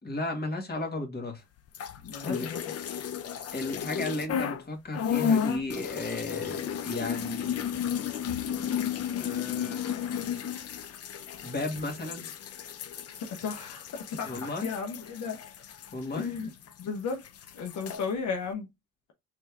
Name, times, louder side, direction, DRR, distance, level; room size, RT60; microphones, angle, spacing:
voice 1, 0.0-1.4 2.2-2.5 3.5-7.7 9.2-9.8 11.4-12.3 14.3-14.7 15.9-16.3, left 2 dB, 30° left, 2.0 m, -34 dB
sound 1, 1.7-4.6 4.9-16.8 17.1-18.0, left 8 dB, 55° left, 0.7 m, -33 dB
voice 2, 2.0-3.0 13.3-15.4 16.1-16.5 16.8-17.2 17.5-18.7, left 5 dB, 75° left, 1.1 m, -35 dB
4.2 x 3.3 x 3.4 m
cardioid pair, 90°, 30 cm